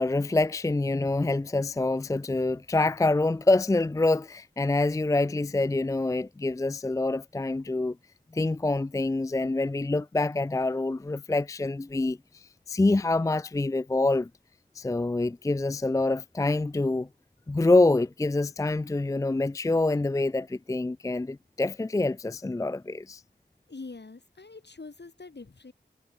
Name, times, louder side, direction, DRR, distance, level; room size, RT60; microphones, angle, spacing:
voice 1, 0.0-8.0 8.3-14.3 14.8-17.1 17.5-23.2, left 2 dB, 20° left, 0.4 m, -26 dB
voice 2, 23.7-25.7, left 3 dB, 75° left, 3.2 m, -44 dB
wide cardioid pair, 50°, 18 cm